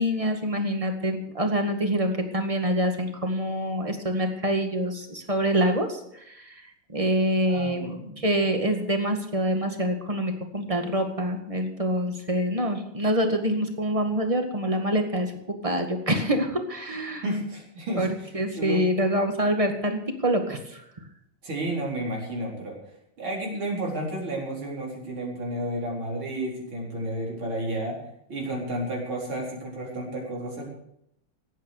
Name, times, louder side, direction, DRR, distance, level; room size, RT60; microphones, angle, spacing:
voice 1, 0.0-6.6 6.9-17.2 18.0-18.1 18.3-20.8, equal, 15° right, 5 dB, 1.7 m, -26 dB
voice 2, 7.5-8.2 17.2-18.3 18.5-18.8 21.4-22.8 23.2-28.0 28.3-30.6, right 1 dB, 70° right, -2 dB, 5.0 m, -31 dB
16.5 x 9.1 x 6.6 m, 0.77 s
omnidirectional pair, 2.4 m